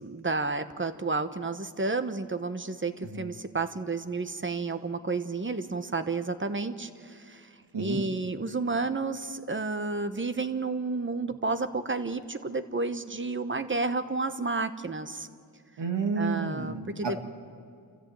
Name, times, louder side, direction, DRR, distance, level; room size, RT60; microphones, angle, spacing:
voice 1, 0.0-7.5 7.8-15.3 16.2-17.2, right 3 dB, 25° right, 10 dB, 1.1 m, -31 dB
voice 2, 15.8-17.2, right 4 dB, 75° right, 4 dB, 2.4 m, -30 dB
28.5 x 14.5 x 8.9 m, 2.2 s
wide cardioid pair, 90°, 43 cm